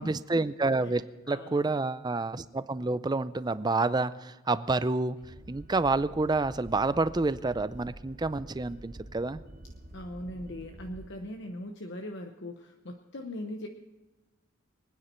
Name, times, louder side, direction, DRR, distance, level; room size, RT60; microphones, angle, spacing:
voice 1, 0.0-5.2 5.5-9.4, right 3 dB, 20° right, 14 dB, 0.4 m, -28 dB
voice 2, 0.8-1.7 9.9-13.7, left 1 dB, 55° left, 4 dB, 0.9 m, -40 dB
sound 1, 5.2-11.1, right 1 dB, 40° right, 1.1 m, -48 dB
24.0 x 9.7 x 4.4 m, 1.1 s
head